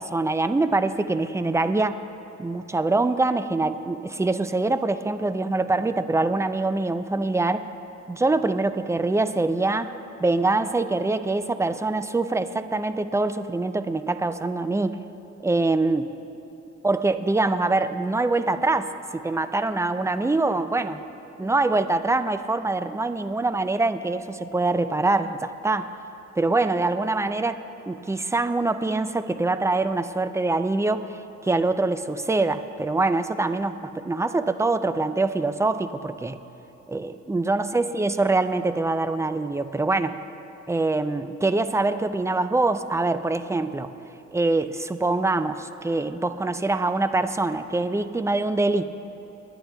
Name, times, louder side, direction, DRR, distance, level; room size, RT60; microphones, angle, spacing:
voice 1, 0.0-2.0 2.4-7.7 8.1-9.9 10.2-15.0 15.4-16.1 16.8-21.0 21.4-25.9 26.4-36.4 36.9-40.2 40.7-43.9 44.3-48.8, right 2 dB, 10° right, 11 dB, 0.3 m, -24 dB
25.0 x 10.0 x 2.3 m, 2.9 s
cardioid pair, 100°, 30 cm